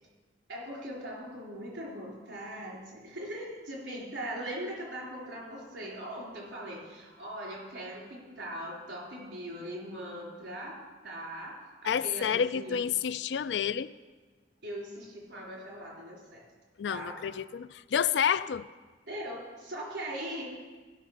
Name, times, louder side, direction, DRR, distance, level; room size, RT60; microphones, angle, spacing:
voice 1, 0.5-12.8 14.6-16.4 16.8-17.2 19.1-20.5, right 1 dB, 80° right, -3 dB, 3.9 m, -40 dB
voice 2, 11.8-13.9 16.8-18.7, left 8 dB, 70° left, 15 dB, 0.4 m, -29 dB
15.5 x 5.5 x 6.4 m, 1.4 s
head